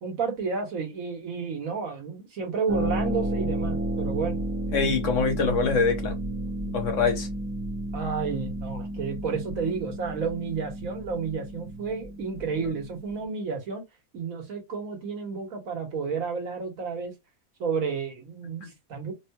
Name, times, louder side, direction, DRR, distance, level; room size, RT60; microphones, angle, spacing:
voice 1, 0.0-4.4 7.9-13.8 14.1-17.1 17.6-19.1, right 5 dB, 80° right, 1.6 m, -31 dB
Harp, 2.7-13.2, right 1 dB, 25° right, 0.4 m, -32 dB
voice 2, 4.7-6.2 6.7-7.3 18.6-18.7, left 5 dB, 65° left, 1.3 m, -24 dB
4.2 x 2.3 x 2.8 m
omnidirectional pair, 1.4 m